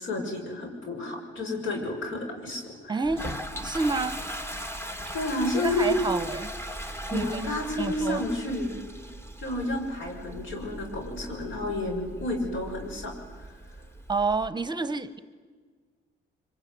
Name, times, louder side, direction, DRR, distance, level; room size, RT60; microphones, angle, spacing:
voice 1, 0.0-3.0 5.1-6.0 7.1-8.8 9.4-13.1 13.4-13.5, left 2 dB, 75° left, 3 dB, 6.5 m, -31 dB
voice 2, 2.9-3.3 3.6-4.2 5.5-6.5 7.1-7.4 7.8-8.3 14.1-15.2, right 4 dB, 20° right, 12 dB, 1.1 m, -28 dB
Toilet flush, 3.0-14.5, equal, 10° left, 1.7 m, -39 dB
25.0 x 25.0 x 9.5 m, 1.5 s
cardioid pair, 90°, 20 cm